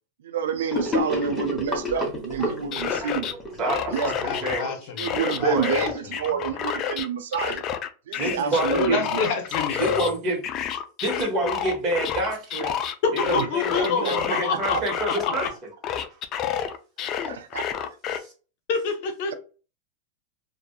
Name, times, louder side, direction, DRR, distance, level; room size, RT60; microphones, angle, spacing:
voice 1, 0.2-3.3 3.7-4.1 5.0-7.7 8.1-9.2 13.3-13.5 13.8-14.8 17.2-17.9, right 7 dB, 80° right, 0.3 m, -29 dB
Gurgling / Sink (filling or washing), 0.7-5.2, left 2 dB, 15° left, 0.9 m, -30 dB
voice 2, 2.4-3.1 3.6-4.7 5.4-5.7 8.2-9.0 9.8-10.4 10.7-12.8 13.3-15.4 16.1-16.2 17.0-17.1 18.1-18.3, right 2 dB, 40° right, 1.2 m, -28 dB
sound 1, 2.5-3.3 3.7-4.6 5.0-7.1 7.3-10.1 10.4-15.5 15.8-18.2, left 9 dB, 40° left, 0.3 m, -29 dB
voice 3, 4.2-6.6 8.8-10.1 13.0-14.8 15.2-15.3 18.7-19.3, left 5 dB, 60° left, 0.7 m, -28 dB
2.5 x 2.4 x 2.3 m
hypercardioid pair, 115°, 0 cm